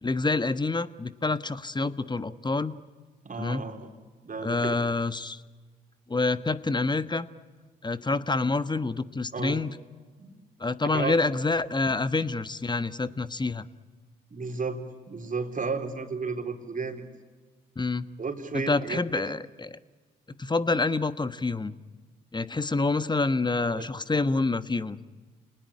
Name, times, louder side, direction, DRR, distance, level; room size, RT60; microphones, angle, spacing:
voice 1, 0.0-2.8 3.4-3.6 4.4-5.4 6.1-7.3 7.8-9.7 10.6-13.7 17.8-18.1 18.5-19.8 20.4-21.8 22.3-25.0, left 3 dB, 20° left, 14 dB, 1.3 m, -27 dB
voice 2, 3.2-3.9 4.2-4.7 9.3-9.6 10.2-10.3 10.9-11.1 14.3-14.8 15.1-17.0 18.2-19.4 23.7-23.9, right 4 dB, 40° right, 4 dB, 3.7 m, -33 dB
28.0 x 19.5 x 9.9 m, 1.4 s
hypercardioid pair, 45°, 20 cm